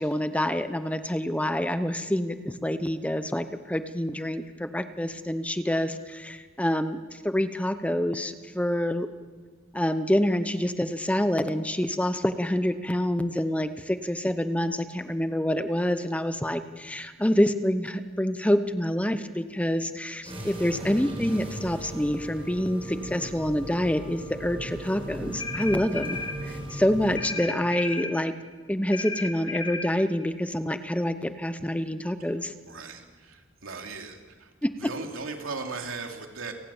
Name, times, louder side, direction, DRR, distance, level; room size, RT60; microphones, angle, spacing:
voice 1, 0.0-9.1 9.7-26.2 26.4-28.3 28.7-32.5 34.6-34.7, equal, 5° left, 10 dB, 0.9 m, -27 dB
sound 1, 20.2-27.2, right 1 dB, 25° right, 5.4 m, -38 dB
sound 2, 25.4-26.4 27.2-28.1 28.9-29.9, left 3 dB, 25° left, 2.7 m, -34 dB
voice 2, 32.2-34.5 34.8-36.5, right 4 dB, 90° right, 3 dB, 3.0 m, -38 dB
30.0 x 18.5 x 7.2 m, 1.4 s
head